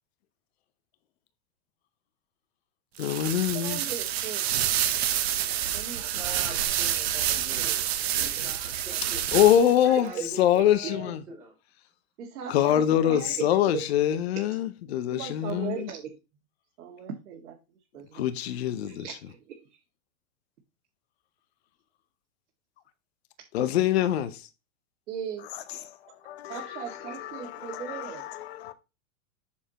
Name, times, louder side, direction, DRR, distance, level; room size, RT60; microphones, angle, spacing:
voice 1, 3.0-3.8 9.0-10.1 10.4-11.2 12.5-15.9 18.1-19.1 23.5-24.5 25.5-26.0 26.2-28.7, left 11 dB, 45° left, 0.8 m, -25 dB
sound 1, 3.0-9.8, right 11 dB, 45° right, 0.9 m, -28 dB
voice 2, 3.5-4.5 5.7-6.0 6.4-6.5 8.0-8.4 8.7-9.3 9.8-10.3 10.5-10.6 12.2-13.5 13.7-13.8 15.1-16.1 16.8-17.6 17.9-18.3 18.8-19.8 25.1-25.5 26.5-28.2, right 8 dB, 70° right, 2.1 m, -38 dB
voice 3, 6.0-7.8 8.2-9.5 10.0-11.5, right 3 dB, 5° right, 0.5 m, -43 dB
7.3 x 6.6 x 2.9 m
supercardioid pair, 180°, 46 cm